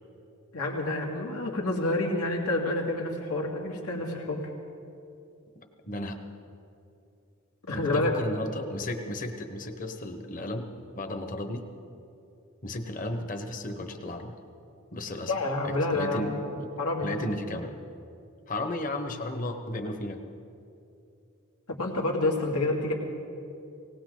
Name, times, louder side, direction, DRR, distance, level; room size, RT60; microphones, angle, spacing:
voice 1, 0.5-4.4 7.6-8.1 15.3-16.4 16.8-17.2 21.7-22.9, left 2 dB, 90° left, -1 dB, 2.4 m, -28 dB
voice 2, 5.8-6.2 7.7-10.7 10.9-11.6 12.6-14.4 14.9-15.3 15.6-16.7 17.0-17.7 18.5-20.2, left 1 dB, 35° left, 6 dB, 1.1 m, -34 dB
19.0 x 18.5 x 3.9 m, 2.7 s
head